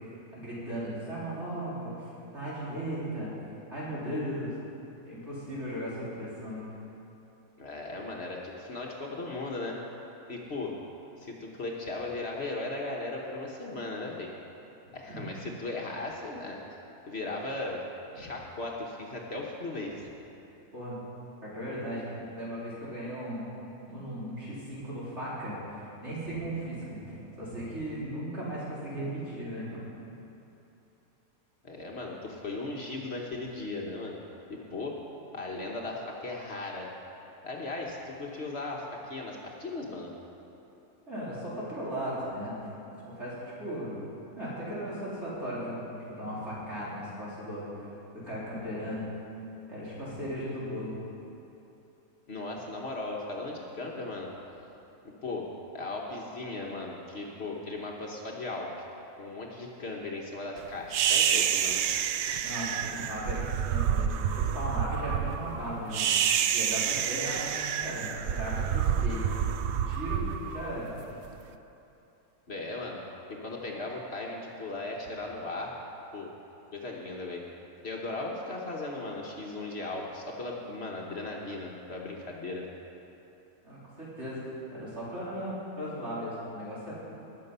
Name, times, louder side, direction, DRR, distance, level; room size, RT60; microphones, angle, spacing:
voice 1, 0.3-3.3 3.7-4.5 5.1-6.7 15.1-15.3 20.7-21.0 21.4-23.4 23.9-29.9 41.1-42.5 42.9-43.9 44.4-47.9 48.2-49.0 49.7-50.9 62.4-66.1 66.5-69.2 69.6-70.9 83.6-84.4 84.7-86.9, equal, 50° right, -9 dB, 4.0 m, -37 dB
voice 2, 7.6-9.8 10.3-10.8 11.2-14.3 14.9-16.6 17.1-17.8 18.1-20.1 31.6-34.2 34.5-35.0 35.3-36.9 37.4-40.1 52.3-54.3 55.2-55.5 55.7-58.7 59.2-61.8 72.5-73.0 73.3-75.7 76.1-76.3 76.7-77.4 77.8-82.6, left 2 dB, 50° left, -1 dB, 1.3 m, -37 dB
sound 1, 60.9-71.3, right 9 dB, 65° right, 0.7 m, -28 dB
20.0 x 6.8 x 5.5 m, 3.0 s
omnidirectional pair, 1.5 m